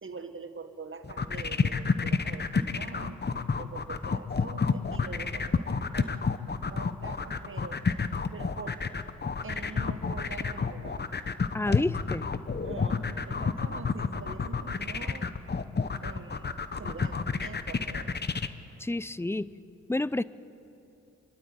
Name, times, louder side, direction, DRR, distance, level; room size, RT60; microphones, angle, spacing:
voice 1, 0.0-3.2 3.6-5.7 5.9-6.2 6.7-7.8 8.3-8.9 9.4-11.1 12.6-15.3 16.0-16.5 16.8-18.2, right 4 dB, 40° right, 7 dB, 1.7 m, -44 dB
sound 1, 1.0-18.5, left 5 dB, 35° left, 1.0 m, -29 dB
voice 2, 11.5-12.2 18.8-19.5 19.9-20.2, left 2 dB, 10° left, 18 dB, 0.5 m, -29 dB
25.5 x 12.0 x 8.5 m, 2.9 s
cardioid pair, 50°, 30 cm